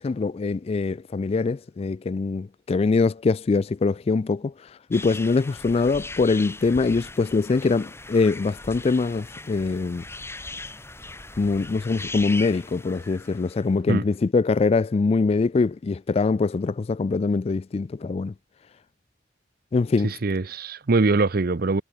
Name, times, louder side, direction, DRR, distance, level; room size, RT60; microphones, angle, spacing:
voice 1, 0.0-10.0 11.4-18.3 19.7-20.1, left 4 dB, 35° left, 0.3 m, -23 dB
sound 1, 4.9-13.7, left 2 dB, 15° left, 4.7 m, -39 dB
voice 2, 20.0-21.8, right 3 dB, 55° right, 0.7 m, -22 dB
head